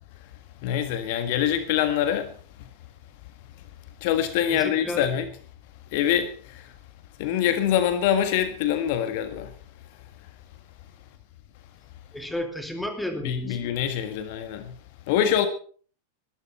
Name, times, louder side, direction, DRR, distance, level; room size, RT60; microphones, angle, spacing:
voice 1, 0.6-2.3 4.0-5.3 5.9-6.6 7.2-9.5 13.2-14.7 15.1-15.5, left 10 dB, 50° left, 1.6 m, -24 dB
voice 2, 4.5-5.1 12.1-13.7, left 1 dB, 5° left, 2.6 m, -32 dB
21.0 x 12.5 x 4.4 m
figure-of-eight pair, 90°, 0 cm